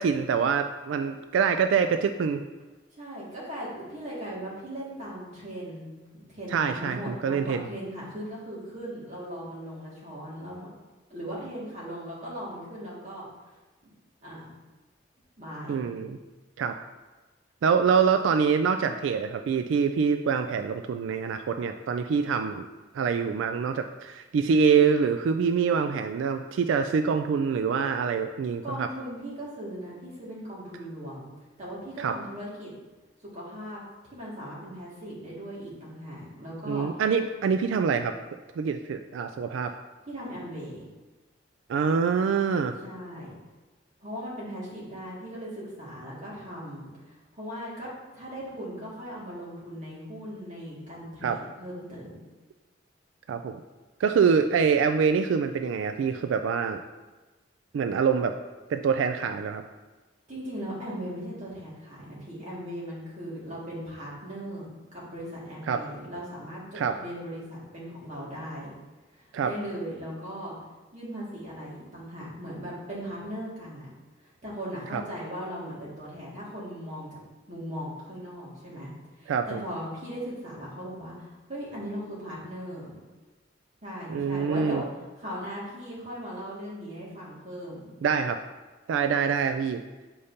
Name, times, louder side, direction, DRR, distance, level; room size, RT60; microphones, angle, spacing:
voice 1, 0.0-2.4 6.5-7.6 15.7-16.2 16.6-16.8 17.6-22.7 22.9-28.9 32.0-32.2 36.7-38.1 38.6-39.7 41.7-42.7 51.2-51.4 53.3-53.5 54.0-56.8 57.7-58.4 58.7-59.6 65.7-65.8 66.7-67.0 69.3-69.5 74.9-75.0 79.3-79.6 84.1-84.8 88.0-88.4 88.9-89.8, right 6 dB, 90° right, 8 dB, 0.3 m, -25 dB
voice 2, 2.9-10.7 11.1-13.3 14.2-14.4 15.4-15.8 28.6-31.3 31.6-32.7 33.3-33.8 34.1-37.0 40.1-40.9 42.8-43.3 44.0-52.1 60.3-68.7 69.1-70.5 70.9-73.9 74.2-77.2 77.5-78.9 79.2-82.9 83.8-84.9 85.2-87.8, equal, 40° right, -7 dB, 2.0 m, -38 dB
6.9 x 5.1 x 2.7 m, 1.2 s
head